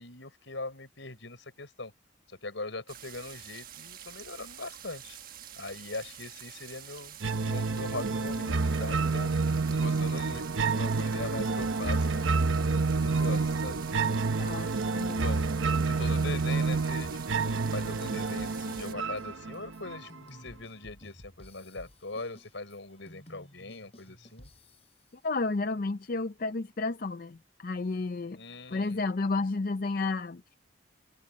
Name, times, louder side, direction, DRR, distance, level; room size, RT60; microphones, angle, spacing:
voice 1, 0.0-1.9 2.4-5.2 5.6-10.4 10.8-12.4 13.0-14.2 15.0-15.4 15.9-24.5 28.4-29.0, left 3 dB, 75° left, 5.0 m, -41 dB
sound 1, 2.9-18.9, right 10 dB, 50° right, 1.4 m, -47 dB
sound 2, 7.2-20.2, right 4 dB, 80° right, 0.8 m, -29 dB
sound 3, 9.5-15.1 15.4-25.1, left 1 dB, 30° left, 6.7 m, -54 dB
voice 2, 14.4-15.3 25.2-28.4 28.7-30.4, left 3 dB, 50° left, 0.5 m, -32 dB
head